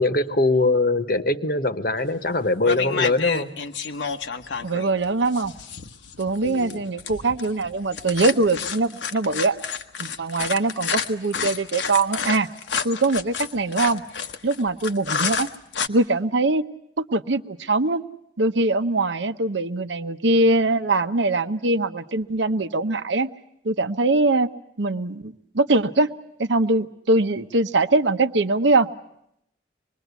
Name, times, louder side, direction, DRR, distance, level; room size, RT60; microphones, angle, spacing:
voice 1, 0.0-3.5 6.4-6.8, left 2 dB, 50° left, 10 dB, 1.2 m, -22 dB
sound 1, 2.1-2.3 2.6-15.9, left 6 dB, 75° left, 1.1 m, -30 dB
voice 2, 4.6-5.5 6.2-9.6 10.0-12.5 12.8-14.0 14.4-15.5 15.9-16.6 17.0-18.0 18.4-23.3 23.6-24.5 24.8-26.1 26.4-28.9, right 2 dB, 75° right, 10 dB, 0.9 m, -22 dB
25.5 x 21.0 x 8.2 m, 0.76 s
head